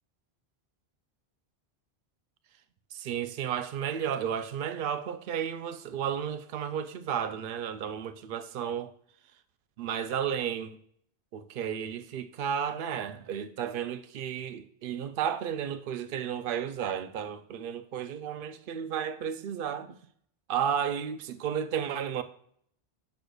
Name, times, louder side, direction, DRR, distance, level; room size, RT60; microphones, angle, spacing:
voice 1, 2.9-8.9 9.8-10.8 11.3-20.0 20.5-22.2, right 8 dB, 65° right, 0.7 m, -33 dB
8.0 x 6.5 x 2.3 m
omnidirectional pair, 1.1 m